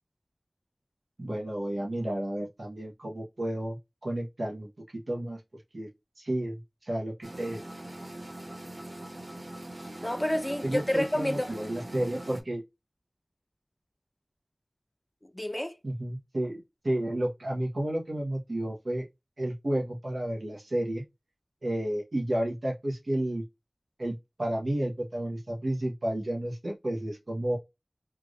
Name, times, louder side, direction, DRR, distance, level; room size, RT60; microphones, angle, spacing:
voice 1, 1.2-5.4 5.7-5.9 6.2-7.6 10.6-12.6 15.8-19.1 19.4-21.0 21.6-23.4 24.0-27.6, right 1 dB, 85° right, 1.1 m, -32 dB
sound 1, 7.2-12.4, right 1 dB, 50° right, 1.2 m, -42 dB
voice 2, 10.0-11.5 15.2-15.8, left 1 dB, 20° left, 0.7 m, -29 dB
3.5 x 2.5 x 3.2 m
wide cardioid pair, 40°, 0 cm